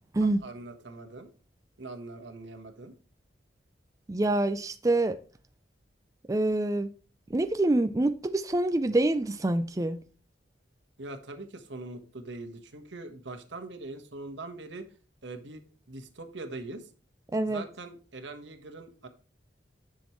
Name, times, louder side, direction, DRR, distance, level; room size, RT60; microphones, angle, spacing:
voice 1, 0.2-1.3 1.8-2.9 11.0-14.9 15.2-15.6 15.9-16.9 17.5-19.1, right 2 dB, 85° right, 1.3 m, -42 dB
voice 2, 4.1-5.2 6.3-6.9 7.3-10.0 17.3-17.6, right 2 dB, 20° right, 0.4 m, -26 dB
10.5 x 6.3 x 3.1 m
head